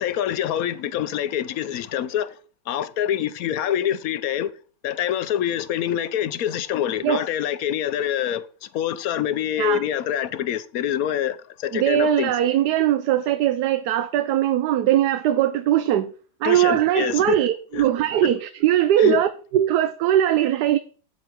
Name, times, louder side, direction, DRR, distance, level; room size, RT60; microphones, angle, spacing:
voice 1, 0.0-2.3 2.7-4.5 4.8-8.4 8.7-12.3 16.4-17.4 17.7-17.9 18.2-18.3 19.0-19.2, left 10 dB, 65° left, 0.9 m, -25 dB
voice 2, 11.7-16.1 16.4-20.8, right 11 dB, 75° right, 1.2 m, -20 dB
8.5 x 8.2 x 4.6 m
omnidirectional pair, 1.9 m